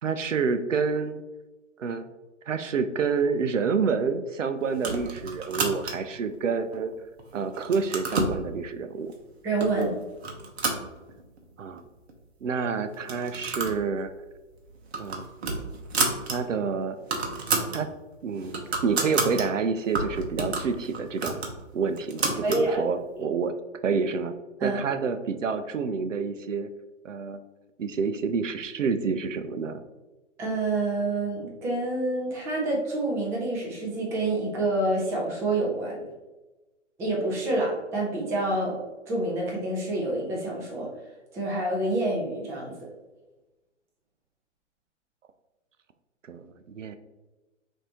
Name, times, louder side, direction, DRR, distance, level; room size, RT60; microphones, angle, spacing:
voice 1, 0.0-1.2 1.8-2.0 2.5-6.9 7.3-9.1 11.6-11.8 12.4-14.1 15.0-15.3 16.3-17.0 17.7-17.9 18.2-21.4 21.7-23.5 23.8-24.3 24.6-26.7 27.0-27.4 27.8-29.8 46.3-47.0, right 5 dB, 85° right, 10 dB, 0.5 m, -28 dB
sound 1, 4.8-6.2 6.7-7.2 7.5-8.4 9.1-9.2 9.6-9.9 10.2-11.4 11.8-11.9 12.1-12.2 12.9-13.8 14.1-14.3 14.7-16.4 16.7-16.8 17.0-17.8 18.2-19.5 19.9-22.7, right 3 dB, 60° right, 1.0 m, -30 dB
voice 2, 9.4-10.0 22.4-22.8 24.6-24.8 30.4-36.0 37.0-38.8 39.1-40.9 41.3-42.9, right 2 dB, 10° right, -2 dB, 0.4 m, -27 dB
5.8 x 2.7 x 2.9 m, 1.1 s
figure-of-eight pair, 125°, 37 cm